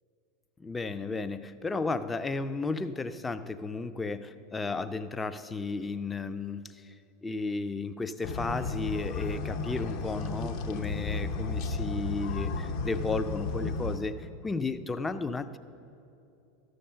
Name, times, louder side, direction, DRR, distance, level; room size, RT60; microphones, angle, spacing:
voice 1, 0.6-6.9 7.2-15.6, left 3 dB, 15° left, 11 dB, 0.4 m, -34 dB
sound 1, 8.2-14.0, left 3 dB, 55° left, 0.8 m, -33 dB
12.5 x 6.6 x 5.6 m, 2.7 s
figure-of-eight pair, 85°, 0 cm